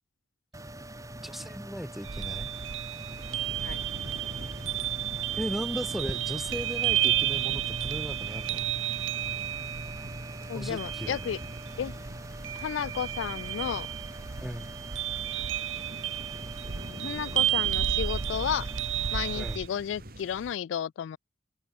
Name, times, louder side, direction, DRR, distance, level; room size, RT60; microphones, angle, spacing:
sound 1, 0.5-19.6, right 1 dB, 15° right, 4.3 m, -42 dB
voice 1, 1.2-2.5 5.4-8.6 10.5-11.2 14.4-14.7 19.4-19.6, equal, ahead, 1.4 m, -37 dB
sound 2, 2.0-19.7, right 11 dB, 90° right, 0.8 m, -32 dB
sound 3, 2.5-20.6, right 1 dB, 50° right, 6.8 m, -47 dB
voice 2, 10.5-11.4 11.8-11.9 12.5-13.9 16.8-18.7 19.1-21.2, left 9 dB, 75° left, 0.3 m, -33 dB
open air
head